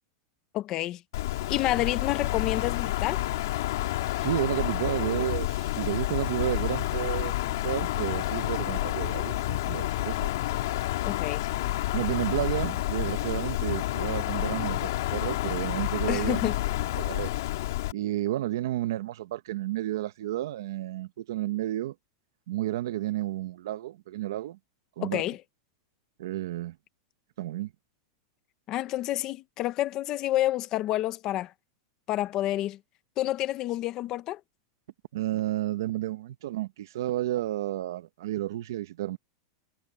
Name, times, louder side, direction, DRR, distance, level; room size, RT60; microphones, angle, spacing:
voice 1, 0.5-1.0 1.5-3.3 11.0-11.5 16.1-16.5 25.0-25.4 28.7-31.5 32.1-32.8 33.2-34.4, left 15 dB, 25° left, 0.8 m, -29 dB
Wind, 1.1-17.9, left 16 dB, 60° left, 2.5 m, -29 dB
voice 2, 4.2-10.3 11.9-16.5 17.0-17.3 17.9-21.9 22.5-24.6 25.0-25.2 26.2-26.8 27.4-27.7 35.1-39.2, right 14 dB, 65° right, 1.2 m, -31 dB
supercardioid pair, 175°, 2 cm